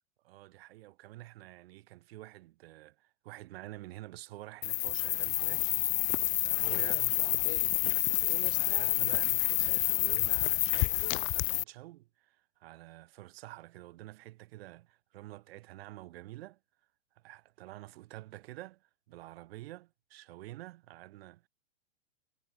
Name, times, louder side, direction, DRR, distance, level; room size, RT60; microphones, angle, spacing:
voice 1, 0.2-16.6 17.1-21.5, right 17 dB, 60° right, 4.7 m, -49 dB
sound 1, 4.6-11.6, left 31 dB, 25° left, 0.3 m, -29 dB
hypercardioid pair, 120°, 34 cm